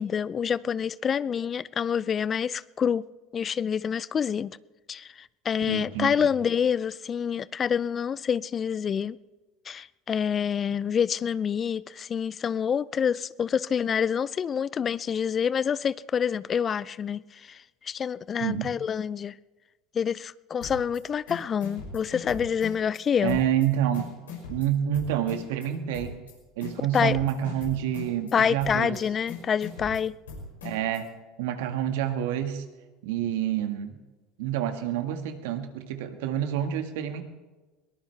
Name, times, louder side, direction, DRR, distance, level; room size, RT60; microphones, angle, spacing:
voice 1, 0.0-3.1 3.3-4.6 4.9-9.2 9.7-19.4 19.9-23.4 26.9-27.2 28.3-30.2, left 7 dB, 35° left, 0.4 m, -27 dB
voice 2, 5.7-6.3 18.4-18.7 23.2-24.1 24.5-26.2 26.6-29.0 30.6-31.1 31.4-32.6 33.0-34.0 34.4-37.2, right 10 dB, 70° right, 1.7 m, -28 dB
sound 1, 20.6-21.0 21.3-23.0 23.3-23.7 23.9-25.7 25.9-26.3 26.6-28.3 28.6-29.0 29.3-31.0, left 4 dB, 85° left, 5.8 m, -40 dB
22.0 x 19.0 x 3.4 m
hypercardioid pair, 80°, 0 cm